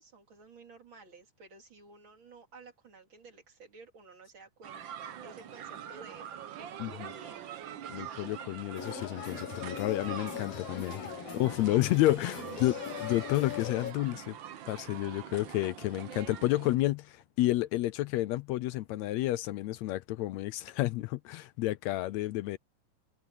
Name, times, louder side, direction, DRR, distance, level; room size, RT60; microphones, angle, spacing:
voice 1, 0.0-7.5 12.2-12.8, right 4 dB, 40° right, 3.3 m, -53 dB
sound 1, 4.6-16.8, right 9 dB, 80° right, 1.0 m, -44 dB
voice 2, 7.9-11.0 11.3-12.7 13.0-14.4 14.7-22.6, left 16 dB, 80° left, 1.6 m, -30 dB
sound 2, 8.8-13.9, left 8 dB, 55° left, 2.6 m, -40 dB
omnidirectional pair, 3.6 m